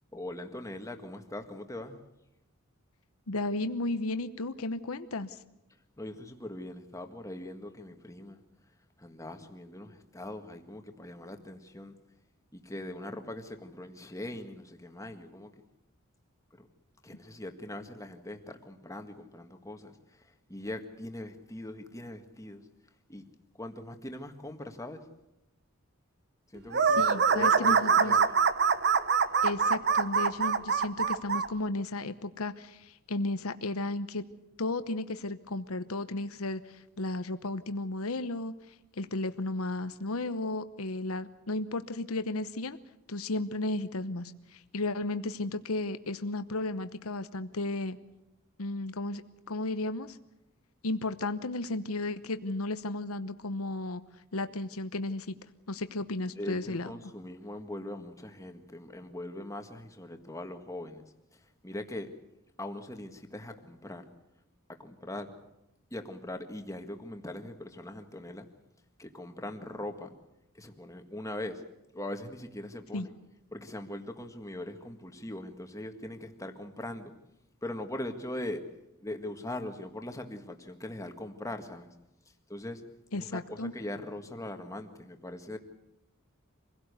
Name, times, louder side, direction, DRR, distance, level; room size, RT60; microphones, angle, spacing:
voice 1, 0.1-2.0 6.0-8.4 9.0-11.9 12.5-15.5 16.6-16.7 17.0-20.2 20.5-22.6 23.1-23.2 23.6-25.0 26.5-28.4 56.4-61.0 61.6-62.1 62.6-64.0 64.8-65.3 65.9-68.5 69.0-70.1 70.6-71.6 71.9-73.1 73.5-77.1 77.6-78.6 79.0-81.9 82.5-82.8 83.1-85.6, left 1 dB, 15° left, 6 dB, 1.8 m, -41 dB
voice 2, 3.3-5.4 27.0-28.2 29.4-34.2 34.6-38.5 39.0-42.8 43.1-48.0 48.6-49.2 49.5-50.2 50.8-54.0 54.3-55.3 55.7-56.9 72.9-73.1 83.1-83.7, left 2 dB, 85° left, 11 dB, 1.0 m, -34 dB
sound 1, 26.7-31.5, right 6 dB, 50° right, 0.9 m, -24 dB
25.5 x 17.0 x 8.2 m, 0.91 s
head